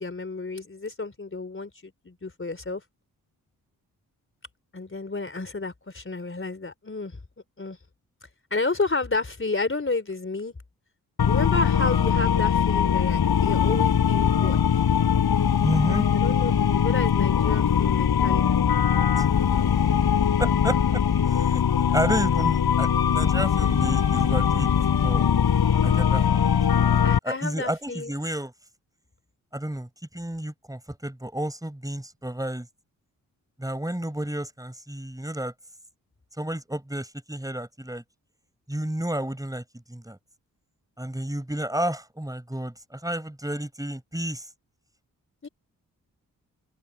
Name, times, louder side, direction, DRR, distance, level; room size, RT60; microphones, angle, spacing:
voice 1, 0.0-2.8 4.7-7.2 7.6-7.8 8.5-10.5 11.3-14.8 16.1-18.8 27.0-28.1 45.4-45.5, left 3 dB, 30° left, 3.8 m, -31 dB
sound 1, 11.2-27.2, left 8 dB, 70° left, 6.1 m, -21 dB
voice 2, 15.6-16.1 19.2-19.3 20.4-21.0 21.3-24.7 25.0-25.3 25.8-26.5 27.2-28.5 29.5-29.9 30.1-32.7 33.6-35.5 36.4-38.0 38.7-39.6 39.9-40.2 41.0-44.5, right 1 dB, 10° right, 5.9 m, -31 dB
open air
supercardioid pair, 40°, 39 cm